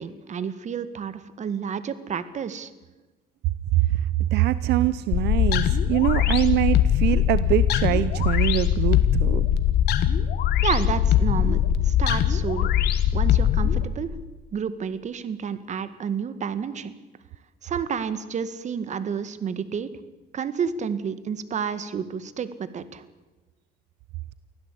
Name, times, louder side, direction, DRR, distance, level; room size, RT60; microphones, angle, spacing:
voice 1, 0.0-2.7 10.6-12.7 13.1-14.1 14.5-16.9 17.6-19.9 20.3-23.0, right 7 dB, 45° right, 13 dB, 1.9 m, -30 dB
voice 2, 3.7-9.5, right 15 dB, 80° right, 16 dB, 0.8 m, -23 dB
sound 1, 5.1-13.8, left 10 dB, 75° left, 1.8 m, -21 dB
24.5 x 16.0 x 8.6 m, 1.2 s
cardioid pair, 110°, 17 cm